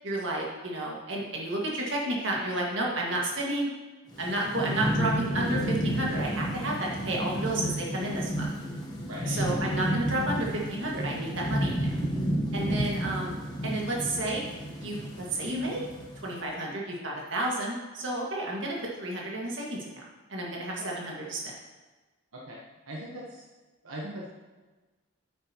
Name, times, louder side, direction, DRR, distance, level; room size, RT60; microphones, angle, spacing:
voice 1, 0.0-3.7 4.2-8.5 9.3-12.0 12.5-14.4 14.8-15.8 16.2-20.0 20.3-21.5, right 1 dB, 60° right, -3 dB, 1.9 m, -31 dB
Thunderstorm / Rain, 4.1-16.4, equal, 20° left, 1.1 m, -31 dB
voice 2, 9.0-9.4 12.7-12.8 22.3-22.6 22.9-23.4 23.8-24.3, right 1 dB, 85° right, -4 dB, 1.2 m, -40 dB
9.1 x 8.7 x 3.0 m, 1.2 s
head